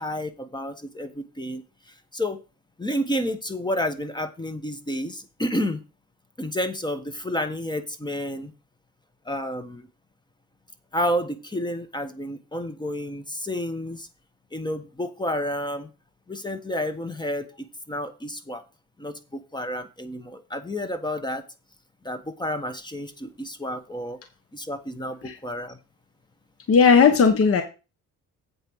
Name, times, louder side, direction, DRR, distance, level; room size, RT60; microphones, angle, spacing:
voice 1, 0.0-1.6 2.1-2.4 2.8-5.8 6.4-8.5 9.3-9.9 10.9-14.1 14.5-15.9 16.3-18.6 19.0-21.4 22.0-24.2 24.5-25.8, equal, 15° left, 11 dB, 1.2 m, -30 dB
voice 2, 26.7-27.6, left 5 dB, 50° left, 8 dB, 1.2 m, -16 dB
8.2 x 5.0 x 6.2 m, 0.31 s
cardioid pair, 90°, 30 cm